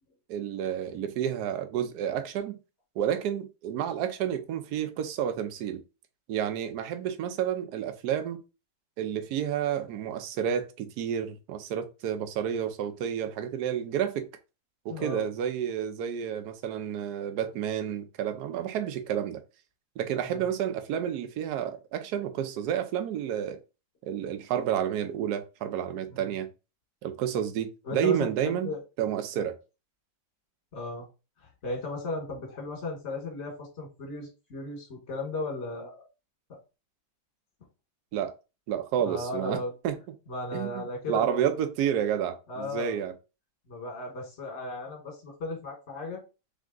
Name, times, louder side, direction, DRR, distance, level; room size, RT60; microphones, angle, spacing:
voice 1, 0.3-2.6 3.0-5.8 6.3-8.4 9.0-14.3 14.8-19.4 20.0-23.6 24.0-26.5 27.0-29.6 38.1-38.3 38.7-40.0 40.5-43.1, right 9 dB, 65° right, 1.1 m, -30 dB
voice 2, 14.9-15.3 20.2-20.5 26.1-26.4 27.8-28.8 29.1-29.4 30.7-31.1 31.4-36.1 39.0-39.7 40.3-41.4 42.5-43.0 43.7-46.2, left 2 dB, 35° left, 1.6 m, -36 dB
3.6 x 3.5 x 3.8 m
omnidirectional pair, 2.1 m